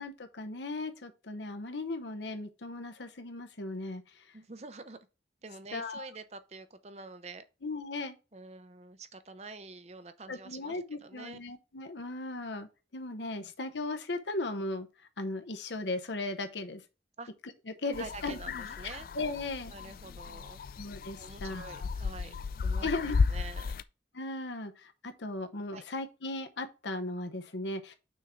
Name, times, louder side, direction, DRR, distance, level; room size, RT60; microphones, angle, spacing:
voice 1, 0.0-4.2 5.7-6.1 7.6-8.2 10.3-14.9 15.2-16.8 17.7-18.4 18.9-19.7 20.8-21.9 22.8-23.2 24.1-27.9, left 2 dB, 85° left, 0.9 m, -37 dB
voice 2, 4.3-5.0 5.4-7.4 8.3-11.4 13.4-13.5 17.2-17.3 18.0-19.1 19.7-20.6 21.2-22.3 22.6-23.7 25.7-25.9, right 3 dB, 40° right, 0.6 m, -47 dB
sound 1, 17.9-23.8, left 5 dB, 50° left, 0.3 m, -34 dB
6.2 x 3.7 x 5.7 m
head